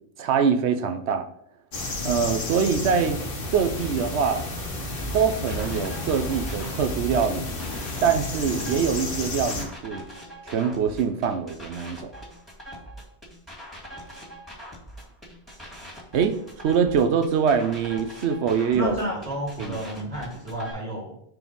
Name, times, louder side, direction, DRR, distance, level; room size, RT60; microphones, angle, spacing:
voice 1, 0.2-1.2 2.0-3.2 3.5-4.4 5.1-7.5 8.0-10.0 10.5-12.1 16.1-19.0 19.6-19.8, right 6 dB, 85° right, 8 dB, 1.0 m, -24 dB
sound 1, 1.7-9.6, left 2 dB, 60° left, 1.2 m, -32 dB
sound 2, 4.7-20.7, equal, ahead, 1.9 m, -41 dB
voice 2, 18.7-21.2, equal, 35° right, -3 dB, 1.7 m, -31 dB
4.5 x 3.9 x 5.3 m, 0.69 s
omnidirectional pair, 1.1 m